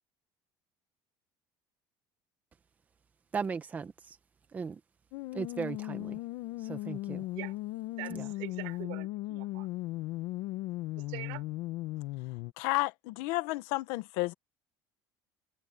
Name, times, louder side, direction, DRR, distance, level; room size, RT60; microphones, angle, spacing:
voice 1, 3.3-4.2 4.5-4.8 5.3-6.2 6.6-7.2 8.1-8.3, right 5 dB, 15° right, 1.0 m, -37 dB
sound 1, 5.1-12.5, left 18 dB, 65° left, 1.3 m, -37 dB
voice 2, 8.0-9.7 10.9-11.4, right 30 dB, 85° right, 6.7 m, -43 dB
voice 3, 12.6-14.3, left 21 dB, 80° left, 1.3 m, -31 dB
cardioid pair, 175°, 9 cm